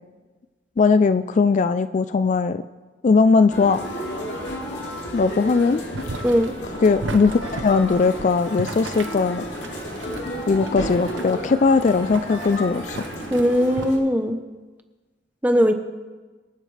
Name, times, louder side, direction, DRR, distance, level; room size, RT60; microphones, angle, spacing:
voice 1, 0.8-2.6 3.0-3.8 5.1-5.8 6.8-9.4 10.5-13.0, left 4 dB, 40° left, 12 dB, 0.3 m, -19 dB
sound 1, 3.5-14.0, equal, 70° left, 2.6 m, -32 dB
Boiling, 5.9-13.9, right 3 dB, 75° right, 0.9 m, -37 dB
voice 2, 6.2-6.5 13.3-14.4 15.4-15.7, equal, 10° right, 7 dB, 0.8 m, -19 dB
25.5 x 9.0 x 3.3 m, 1.3 s
head